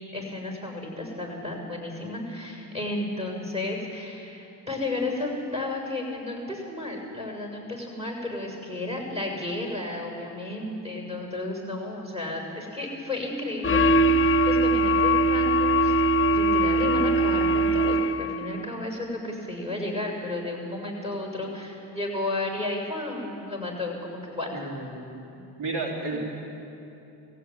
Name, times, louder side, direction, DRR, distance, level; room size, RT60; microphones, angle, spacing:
voice 1, 0.1-15.9 16.3-24.5 26.1-26.2, left 2 dB, 15° right, 1 dB, 7.0 m, -33 dB
sound 1, 13.6-18.5, right 1 dB, 30° left, 0.8 m, -21 dB
voice 2, 24.5-26.2, right 3 dB, 85° right, -1 dB, 3.2 m, -33 dB
20.5 x 16.0 x 9.4 m, 2.8 s
supercardioid pair, 55°, 40 cm